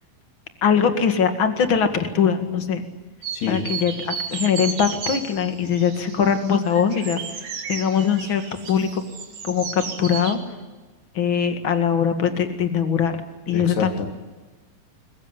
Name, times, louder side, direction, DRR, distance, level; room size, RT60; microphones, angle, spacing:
voice 1, 0.6-2.8 3.5-9.0 9.4-10.4 11.1-13.2 13.5-13.9, left 7 dB, 40° left, 8 dB, 2.1 m, -22 dB
sound 1, 3.2-10.4, right 6 dB, 45° right, 2.8 m, -34 dB
voice 2, 3.3-3.7 13.5-14.1, left 6 dB, 85° left, 5 dB, 4.8 m, -27 dB
22.0 x 21.5 x 9.9 m, 1.2 s
omnidirectional pair, 4.6 m